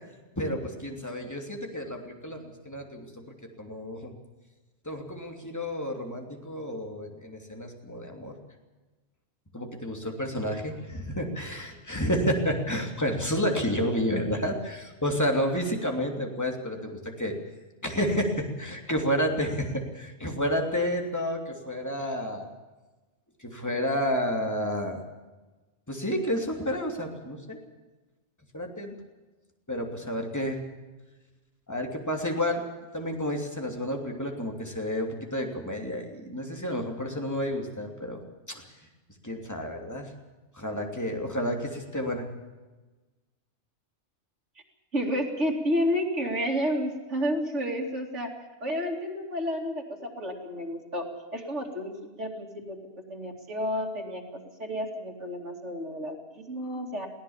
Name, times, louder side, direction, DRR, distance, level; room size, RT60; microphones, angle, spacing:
voice 1, 0.4-3.2 3.6-4.1 4.8-8.3 9.5-17.4 17.8-22.5 23.4-25.0 25.9-27.6 28.5-28.9 29.7-30.6 31.7-32.6 32.9-38.2 38.5-38.6 39.2-40.1 40.5-42.3, equal, 15° left, 2 dB, 2.9 m, -30 dB
voice 2, 44.9-48.3 48.6-51.1 51.3-52.8 53.1-57.1, equal, 85° right, -1 dB, 3.1 m, -31 dB
22.5 x 16.5 x 7.3 m, 1.2 s
omnidirectional pair, 1.2 m